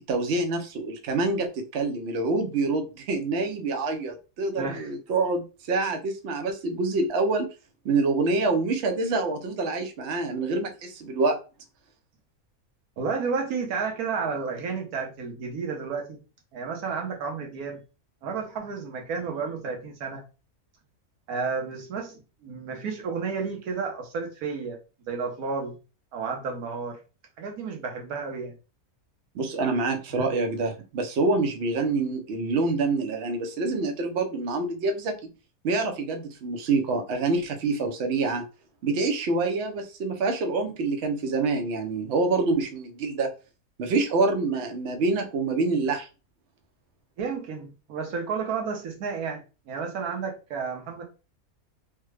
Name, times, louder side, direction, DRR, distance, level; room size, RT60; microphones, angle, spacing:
voice 1, 0.1-7.5 7.8-11.4 29.3-35.3 35.6-38.4 38.8-43.3 43.8-46.1, right 3 dB, 60° right, 0.8 m, -26 dB
voice 2, 4.6-4.9 13.0-16.2 16.5-17.8 18.2-20.2 21.3-24.8 25.0-25.7 26.1-27.0 27.4-28.6 30.2-30.3 47.2-51.0, right 5 dB, 90° right, 1.3 m, -31 dB
3.3 x 2.2 x 3.2 m
omnidirectional pair, 1.5 m